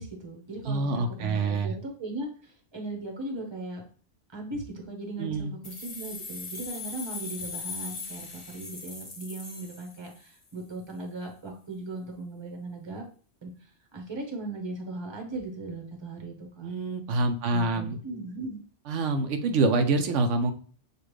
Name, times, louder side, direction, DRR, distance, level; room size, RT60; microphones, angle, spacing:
voice 1, 0.0-3.8 4.3-13.0 13.4-16.7 17.5-18.6, right 2 dB, 25° right, 1 dB, 1.0 m, -38 dB
voice 2, 0.7-1.7 5.2-5.5 16.6-18.0 18.9-20.5, right 3 dB, 90° right, 7 dB, 1.0 m, -26 dB
sound 1, 5.6-10.4, left 4 dB, 30° left, 0.9 m, -39 dB
6.7 x 2.5 x 3.1 m, 0.42 s
omnidirectional pair, 1.2 m